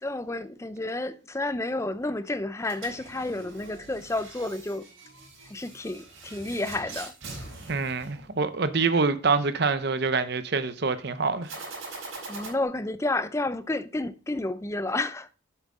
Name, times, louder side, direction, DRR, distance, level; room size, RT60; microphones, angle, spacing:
voice 1, 0.0-4.8 5.5-7.1 12.3-15.3, left 2 dB, 15° left, 0.4 m, -30 dB
sound 1, 2.6-8.8 11.4-12.5, right 3 dB, 75° right, 3.8 m, -43 dB
voice 2, 7.7-11.5, right 4 dB, 50° right, 0.7 m, -26 dB
8.0 x 7.1 x 3.7 m
head